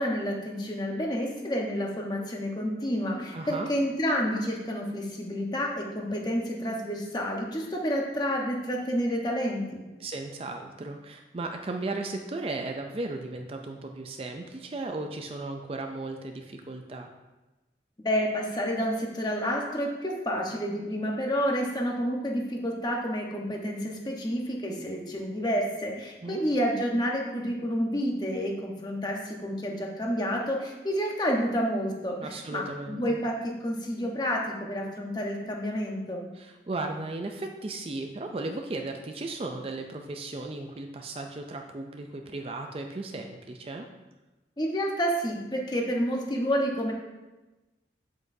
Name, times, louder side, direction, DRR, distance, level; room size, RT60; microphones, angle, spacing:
voice 1, 0.0-9.8 18.0-36.2 44.6-46.9, equal, 25° left, 0 dB, 1.0 m, -29 dB
voice 2, 3.3-3.7 10.0-17.1 26.2-26.4 32.2-33.2 36.3-43.9, right 2 dB, 30° right, 4 dB, 0.4 m, -36 dB
7.9 x 7.6 x 2.7 m, 1.1 s
head